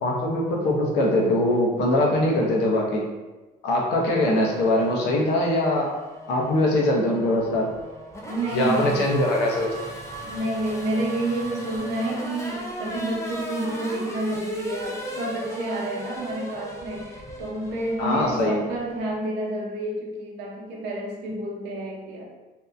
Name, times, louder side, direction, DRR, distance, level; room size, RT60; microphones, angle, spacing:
voice 1, 0.0-3.0 3.6-5.9 6.3-7.7 8.5-9.7 18.0-18.6, left 1 dB, 80° left, -1 dB, 0.7 m, -22 dB
Race car auto racing / Accelerating revving vroom, 4.3-19.1, equal, 15° left, 0.4 m, -37 dB
voice 2, 8.2-9.1 10.2-22.2, right 1 dB, 85° right, -2 dB, 0.7 m, -29 dB
2.6 x 2.2 x 2.4 m, 1.2 s
cardioid pair, 110°, 17 cm